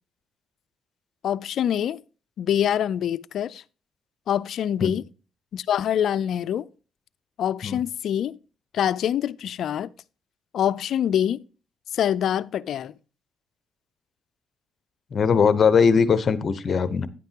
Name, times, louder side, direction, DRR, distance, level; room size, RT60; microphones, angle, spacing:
voice 1, 1.2-2.0 2.4-3.6 4.3-5.1 5.5-6.7 7.4-8.4 8.7-9.9 10.5-11.4 11.9-12.9, left 10 dB, 70° left, 0.4 m, -25 dB
voice 2, 15.1-17.1, left 6 dB, 45° left, 0.8 m, -20 dB
10.0 x 9.4 x 2.9 m
cardioid pair, 90°, 0 cm